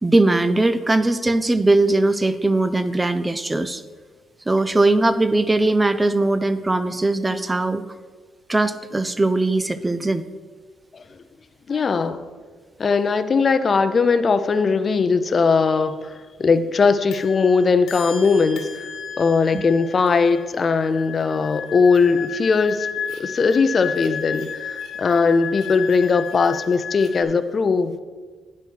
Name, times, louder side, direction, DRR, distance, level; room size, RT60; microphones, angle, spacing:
voice 1, 0.0-3.8 4.5-7.8 8.5-10.3, right 2 dB, 15° right, 12 dB, 0.4 m, -20 dB
voice 2, 11.7-12.2 12.8-18.9 19.2-22.9 23.2-28.0, left 4 dB, 40° left, 11 dB, 0.5 m, -19 dB
sound 1, 17.1-27.2, left 7 dB, 80° left, 1.5 m, -33 dB
9.8 x 4.2 x 6.2 m, 1.4 s
cardioid pair, 90°, 0 cm